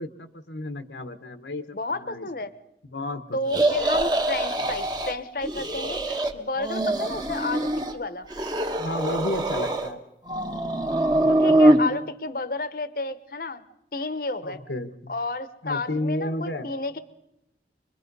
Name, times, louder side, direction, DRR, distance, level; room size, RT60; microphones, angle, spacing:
voice 1, 0.0-2.3 2.9-3.7 8.8-10.0 14.4-15.1 15.6-16.7, left 1 dB, 90° left, 8 dB, 1.2 m, -32 dB
voice 2, 1.7-2.5 3.3-8.3 11.3-13.6 13.9-14.6 15.1-17.0, left 2 dB, 50° left, 14 dB, 0.9 m, -31 dB
sound 1, 3.5-5.1 5.4-6.3 6.6-8.0 8.3-9.9 10.3-11.8, right 1 dB, 25° right, 1.2 m, -23 dB
25.0 x 21.5 x 5.4 m, 0.88 s
head